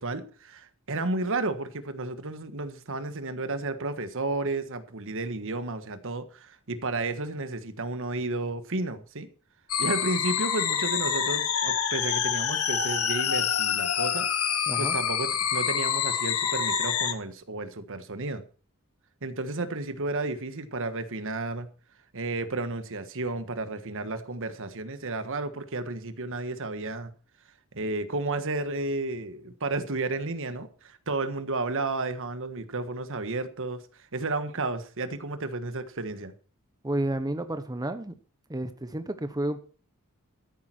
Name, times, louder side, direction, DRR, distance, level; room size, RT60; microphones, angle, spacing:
voice 1, 0.0-9.3 9.8-14.3 14.8-18.4 19.2-21.7 22.1-27.1 27.7-36.3, right 2 dB, 65° right, 1.4 m, -32 dB
sound 1, 9.7-17.1, left 8 dB, 75° left, 1.7 m, -27 dB
voice 2, 36.8-38.1 38.5-39.6, right 1 dB, 20° right, 1.0 m, -31 dB
13.5 x 10.5 x 4.5 m
head